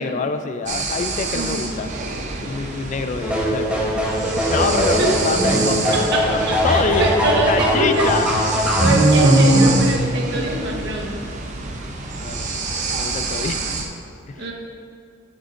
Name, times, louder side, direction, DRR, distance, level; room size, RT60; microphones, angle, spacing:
voice 1, 0.0-1.9 2.4-3.9 4.5-8.3 12.2-12.6 12.9-13.6 14.3-14.5, left 4 dB, 35° left, 8 dB, 0.3 m, -26 dB
sound 1, 0.7-13.8, right 2 dB, 35° right, 0.7 m, -23 dB
voice 2, 1.3-1.6 5.0-5.1 6.1-6.2 6.5-8.1 8.8-11.2 14.4-14.5, right 2 dB, 60° right, 0 dB, 1.1 m, -23 dB
sound 2, 3.2-8.9, equal, 5° right, 0.9 m, -21 dB
11.0 x 6.4 x 2.5 m, 2.3 s
head